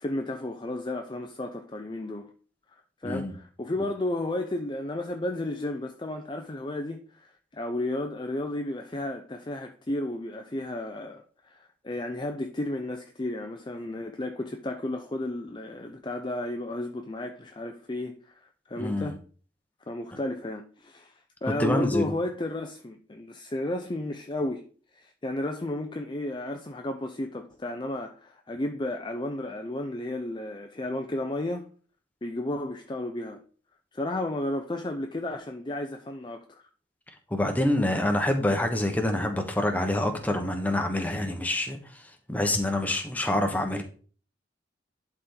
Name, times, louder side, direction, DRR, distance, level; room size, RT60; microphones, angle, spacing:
voice 1, 0.0-2.3 3.0-18.4 18.7-19.2 19.9-24.7 24.9-31.7 32.2-33.4 33.9-36.6, left 1 dB, 25° left, 0.5 m, -33 dB
voice 2, 3.0-3.3 18.8-19.1 21.6-22.1 37.3-42.0 42.3-43.8, left 1 dB, 10° left, 1.2 m, -26 dB
11.0 x 4.3 x 3.9 m
head